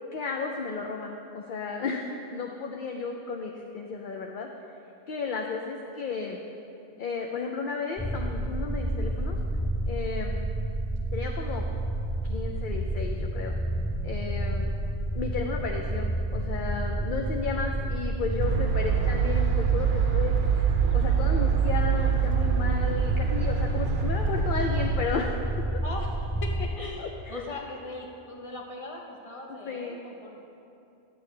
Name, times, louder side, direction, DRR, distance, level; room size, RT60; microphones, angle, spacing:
voice 1, 0.1-4.5 5.1-6.4 7.0-9.4 9.8-10.4 11.1-11.6 12.2-13.5 14.0-14.7 15.1-25.4 27.0-27.6 29.5-30.0, left 4 dB, 55° left, 2 dB, 0.6 m, -33 dB
sound 1, 8.0-26.7, right 1 dB, ahead, 0.4 m, -30 dB
sound 2, 18.4-25.0, right 7 dB, 65° right, 0.9 m, -25 dB
voice 2, 25.8-30.4, left 2 dB, 30° left, 0 dB, 1.0 m, -39 dB
11.0 x 8.3 x 3.3 m, 2.7 s
omnidirectional pair, 1.2 m